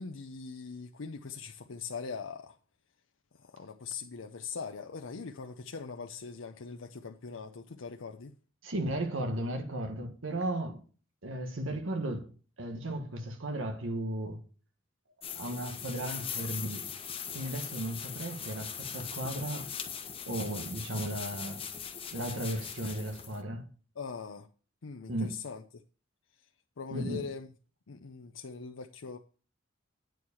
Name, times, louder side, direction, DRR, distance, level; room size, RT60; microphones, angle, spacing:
voice 1, 0.0-2.6 3.4-8.3 24.0-24.5 24.8-25.6 26.8-27.5 27.9-29.2, left 5 dB, 75° left, 0.6 m, -41 dB
voice 2, 8.6-10.8 11.2-12.3 12.6-14.4 15.3-16.8 17.3-19.7 20.3-21.6 22.1-23.7 25.1-25.3 26.9-27.2, right 1 dB, 75° right, 1.5 m, -35 dB
sound 1, 15.2-23.4, left 7 dB, 30° left, 1.0 m, -40 dB
9.2 x 4.7 x 6.9 m
head